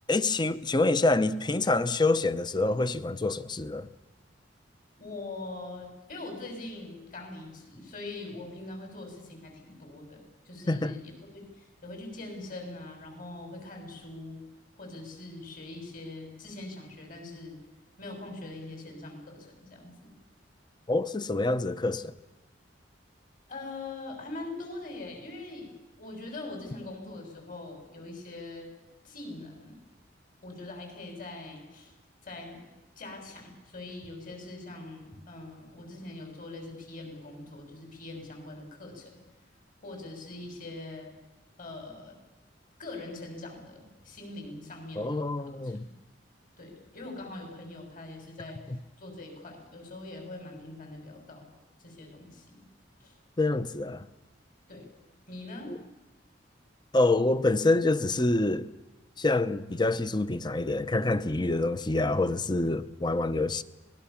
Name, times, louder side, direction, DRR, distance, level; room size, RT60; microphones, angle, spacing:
voice 1, 0.1-3.9 10.7-11.0 20.9-22.1 45.0-45.8 48.7-48.8 53.4-54.1 55.7-55.8 56.9-58.7 59.2-63.6, left 2 dB, 25° left, 0.8 m, -26 dB
voice 2, 5.0-14.4 14.8-17.6 18.0-20.1 23.5-25.7 26.0-28.7 29.0-29.8 30.4-31.9 32.2-32.7 33.0-39.2 39.8-41.1 41.6-42.2 42.8-45.2 45.5-46.0 46.6-51.5 51.8-52.6 53.0-53.2 54.7-54.9 55.3-55.7, left 2 dB, 45° left, 7.0 m, -42 dB
26.0 x 20.0 x 7.2 m
head